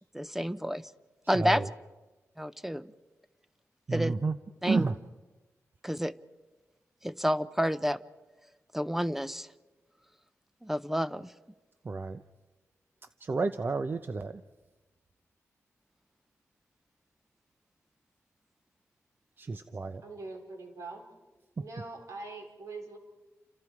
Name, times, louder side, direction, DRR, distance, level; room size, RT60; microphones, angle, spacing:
voice 1, 0.2-0.9 1.3-1.6 2.4-2.9 3.9-4.1 4.6-4.8 5.8-6.1 7.0-8.0 8.7-9.5 10.6-11.3, equal, 5° right, 13 dB, 0.6 m, -29 dB
voice 2, 1.2-1.7 3.9-4.4 4.6-5.0 11.8-12.2 13.2-14.4 19.4-20.0, right 4 dB, 40° right, 10 dB, 0.7 m, -31 dB
voice 3, 20.0-21.0 21.6-23.0, right 3 dB, 90° right, 3 dB, 4.6 m, -43 dB
29.5 x 27.0 x 4.8 m, 1.2 s
wide cardioid pair, 115°, 6 cm